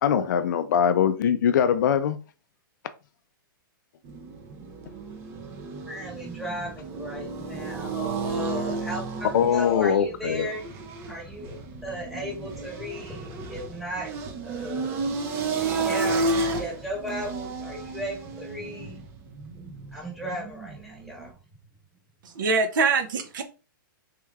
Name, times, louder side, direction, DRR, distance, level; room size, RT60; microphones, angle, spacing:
voice 1, 0.0-2.2 9.3-10.5, left 8 dB, 55° left, 0.4 m, -22 dB
sound 1, 4.0-21.3, right 3 dB, 20° right, 0.4 m, -32 dB
voice 2, 5.8-10.7 11.0-15.1 15.8-19.0 19.9-21.4, equal, ahead, 1.1 m, -36 dB
voice 3, 22.2-23.4, right 4 dB, 65° right, 0.7 m, -24 dB
3.6 x 3.2 x 2.3 m
hypercardioid pair, 160°, 12 cm